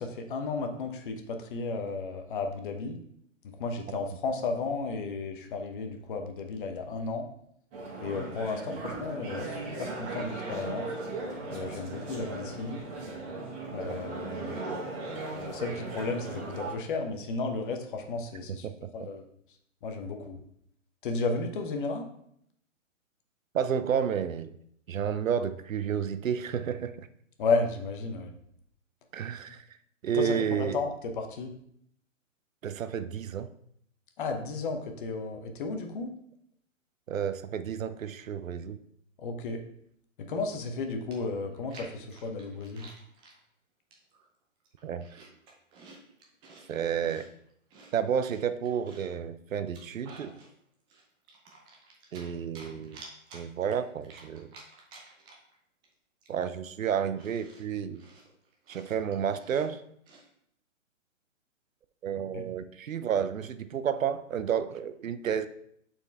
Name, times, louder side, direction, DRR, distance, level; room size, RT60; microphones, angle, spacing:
voice 1, 0.0-3.0 3.6-7.3 8.0-10.9 11.5-12.8 13.7-14.6 15.3-18.7 18.9-19.2 19.8-20.4 21.0-22.1 27.4-28.3 30.1-31.5 34.2-36.1 39.2-39.6 40.2-42.9 62.3-62.4, left 3 dB, 40° left, 5 dB, 0.9 m, -33 dB
sound 1, 7.7-16.8, right 2 dB, 30° right, 2.0 m, -37 dB
voice 2, 18.6-19.1 23.5-24.5 24.9-27.1 29.1-29.6 30.0-30.8 32.6-33.5 37.1-38.8 44.8-45.0 46.7-47.3 47.9-50.3 52.1-53.0 53.3-54.5 56.3-58.0 58.7-59.8 62.0-65.5, right 8 dB, 85° right, 12 dB, 0.6 m, -31 dB
Chewing mastication, 41.1-43.4 43.9-44.3 44.6-46.7 47.0-49.2 49.6-50.5 50.9-52.3 52.5-55.5 55.8-55.9 56.2-60.3, right 3 dB, 15° right, 0.6 m, -52 dB
6.9 x 4.4 x 3.5 m, 0.71 s
hypercardioid pair, 140°, 39 cm